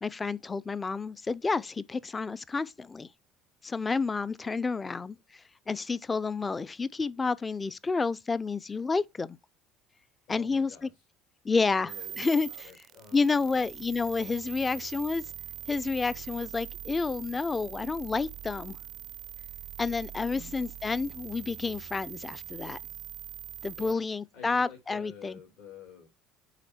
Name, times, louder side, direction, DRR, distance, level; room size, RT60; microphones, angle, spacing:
voice 1, 0.0-3.1 3.6-9.4 10.3-10.9 11.4-12.5 13.1-15.2 15.7-18.8 19.8-22.8 23.6-25.4, left 4 dB, 25° left, 0.5 m, -30 dB
voice 2, 10.3-10.9 11.8-13.6 14.5-14.8 20.3-20.5 23.8-24.0 24.3-26.1, left 6 dB, 70° left, 2.2 m, -50 dB
sound 1, 11.9-23.9, right 12 dB, 55° right, 0.5 m, -43 dB
8.2 x 3.3 x 4.2 m
hypercardioid pair, 75°, 0 cm